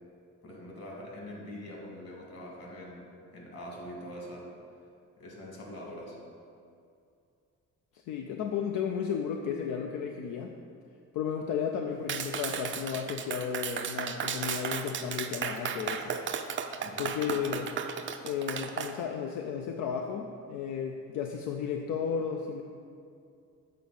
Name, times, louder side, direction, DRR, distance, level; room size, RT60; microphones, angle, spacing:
voice 1, 0.4-4.5 5.2-6.2 16.8-17.1, equal, 55° left, -2 dB, 1.8 m, -44 dB
voice 2, 7.9-10.6 11.1-16.2 17.0-17.7 18.2-22.6, left 7 dB, 85° left, 3 dB, 0.5 m, -33 dB
Clapping, 12.1-18.9, right 7 dB, 40° right, 0.4 m, -34 dB
7.7 x 3.8 x 5.4 m, 2.4 s
cardioid pair, 90°, 30 cm